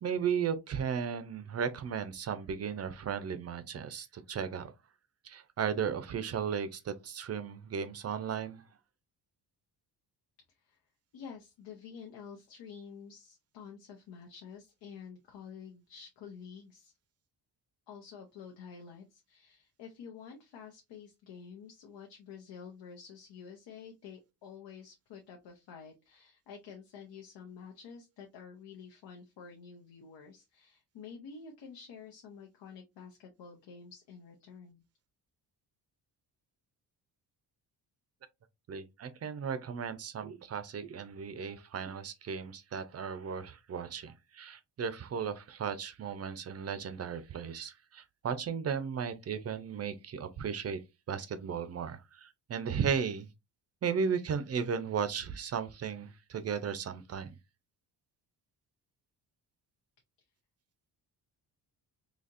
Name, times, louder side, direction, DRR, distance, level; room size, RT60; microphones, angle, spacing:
voice 1, 0.0-4.7 5.2-8.6 38.7-50.8 51.1-53.3 53.8-57.4, right 7 dB, 40° right, 0.5 m, -35 dB
voice 2, 11.1-16.9 17.9-34.8, left 6 dB, 85° left, 0.9 m, -49 dB
4.2 x 2.8 x 2.5 m
wide cardioid pair, 160°, 41 cm